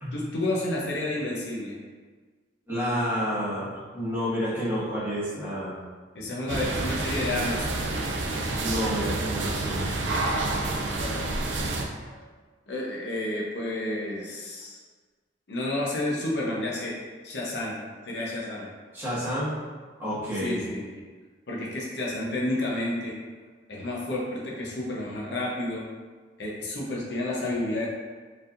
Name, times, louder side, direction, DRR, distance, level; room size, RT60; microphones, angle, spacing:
voice 1, 0.1-1.8 6.1-7.9 10.1-10.5 10.9-11.4 12.7-14.8 15.5-16.9 17.2-17.8 18.0-18.7 20.3-21.0 21.5-23.1 23.7-25.8 26.4-27.9, left 1 dB, 65° left, -4 dB, 0.8 m, -31 dB
voice 2, 2.7-5.8 8.6-10.0 12.0-12.2 18.9-19.5 20.0-20.6, equal, 10° right, -10 dB, 1.4 m, -29 dB
sound 1, 6.5-11.8, right 2 dB, 75° right, 0.5 m, -28 dB
4.4 x 3.4 x 2.5 m, 1.5 s
head